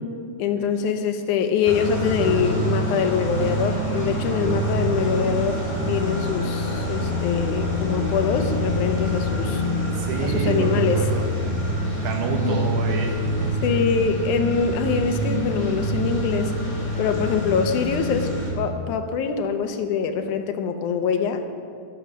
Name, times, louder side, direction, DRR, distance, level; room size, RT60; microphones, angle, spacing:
voice 1, 0.4-9.6 10.2-11.0 12.3-12.6 13.6-16.6 17.0-21.4, left 6 dB, 80° left, 7 dB, 2.2 m, -24 dB
sound 1, 1.6-18.5, equal, 20° left, 2.5 m, -25 dB
voice 2, 10.0-11.4 12.0-13.8, right 3 dB, 75° right, 2 dB, 2.9 m, -28 dB
18.5 x 7.0 x 6.2 m, 2.4 s
omnidirectional pair, 3.6 m